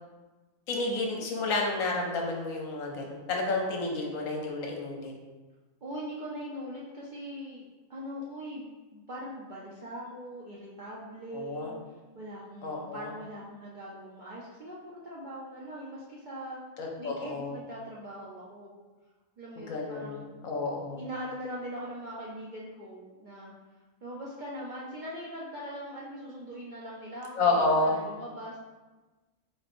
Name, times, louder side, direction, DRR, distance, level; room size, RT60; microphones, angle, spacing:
voice 1, 0.7-5.1 11.3-11.7 12.6-13.1 16.8-17.6 19.6-21.0 27.4-28.0, left 2 dB, 75° left, 0 dB, 1.1 m, -30 dB
voice 2, 5.8-8.6 8.9-11.7 12.1-16.6 17.0-18.8 19.4-20.4 20.9-23.5 24.0-28.6, equal, 60° right, -6 dB, 0.5 m, -41 dB
4.3 x 3.2 x 2.5 m, 1.2 s
omnidirectional pair, 1.4 m